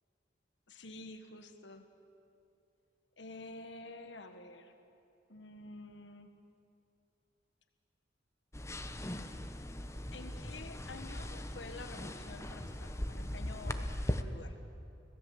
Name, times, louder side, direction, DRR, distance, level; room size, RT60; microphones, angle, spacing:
voice 1, 0.7-1.9 3.2-4.7 5.3-6.4 10.1-14.6, left 2 dB, 75° left, 7 dB, 1.4 m, -49 dB
sound 1, 8.5-14.2, left 1 dB, 15° left, 0.9 m, -39 dB
25.5 x 17.0 x 7.8 m, 2.7 s
head